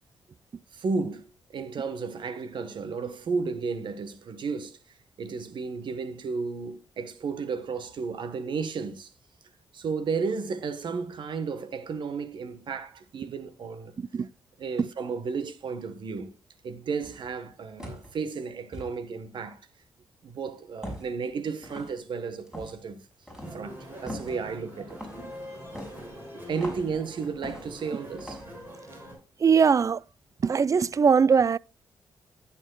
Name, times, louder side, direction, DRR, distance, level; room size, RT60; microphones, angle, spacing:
voice 1, 0.7-1.3 1.5-4.8 5.2-9.1 9.7-13.9 14.6-16.3 16.6-19.6 20.2-23.0 23.5-25.0 26.3-28.4, right 5 dB, 65° right, 1.3 m, -33 dB
sound 1, 17.0-17.3 17.8-18.1 18.7-18.9 20.8-21.2 21.6-22.0 22.5-22.8 23.3-23.6 24.1-24.4 24.9-25.2 25.7-26.9 27.4-27.8 28.2-28.5, equal, 5° right, 5.7 m, -40 dB
sound 2, 23.4-29.1, equal, 25° right, 6.3 m, -43 dB
voice 2, 29.4-30.0 30.4-31.6, right 6 dB, 40° right, 0.4 m, -21 dB
15.5 x 7.4 x 2.3 m
supercardioid pair, 50°, 9 cm